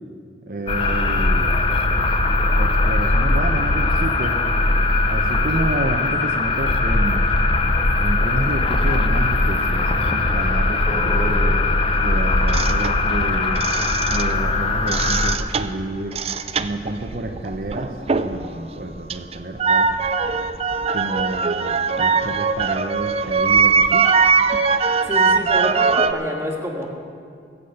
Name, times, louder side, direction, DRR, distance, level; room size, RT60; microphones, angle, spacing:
voice 1, 0.5-1.7 2.6-4.4 5.1-7.3 8.0-11.6 12.0-13.6 14.1-16.2 16.6-18.0 18.2-19.9 20.9-24.1, right 2 dB, 55° right, 2 dB, 0.8 m, -29 dB
sound 1, 0.7-15.4, left 2 dB, 30° left, 0.7 m, -20 dB
sound 2, 12.5-14.5 14.8-18.5 18.8-26.1, right 5 dB, 35° right, 0.5 m, -21 dB
voice 2, 25.0-26.9, equal, 15° right, -1 dB, 1.8 m, -27 dB
21.5 x 8.4 x 5.6 m, 2.3 s
head